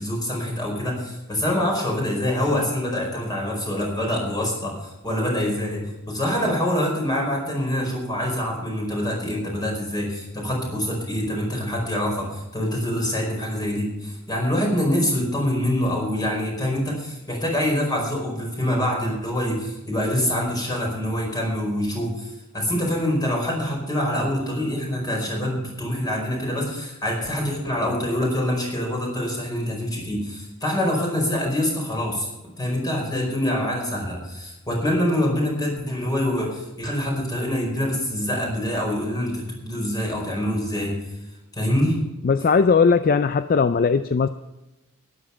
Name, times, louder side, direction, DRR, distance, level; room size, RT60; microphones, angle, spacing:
voice 1, 0.0-32.3 32.6-41.0 41.5-42.0, left 1 dB, 20° left, 0 dB, 4.7 m, -25 dB
voice 2, 42.2-44.3, left 5 dB, 40° left, 12 dB, 0.4 m, -18 dB
12.5 x 11.0 x 5.7 m, 1.0 s
head